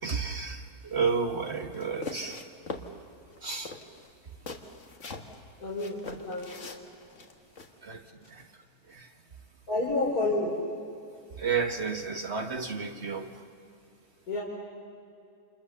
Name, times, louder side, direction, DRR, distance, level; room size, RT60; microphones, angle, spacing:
voice 1, 0.0-2.5 3.4-3.8 7.8-9.1 11.4-13.4, right 5 dB, 45° right, 4 dB, 1.6 m, -32 dB
sound 1, 1.7-2.9 3.3-3.4 3.6-5.4 5.8-7.7, left 3 dB, 55° left, 1.9 m, -41 dB
voice 2, 5.6-6.5 9.7-10.6 14.3-14.4, left 2 dB, 75° left, -3 dB, 4.3 m, -29 dB
29.0 x 28.0 x 7.0 m, 2.5 s
omnidirectional pair, 1.6 m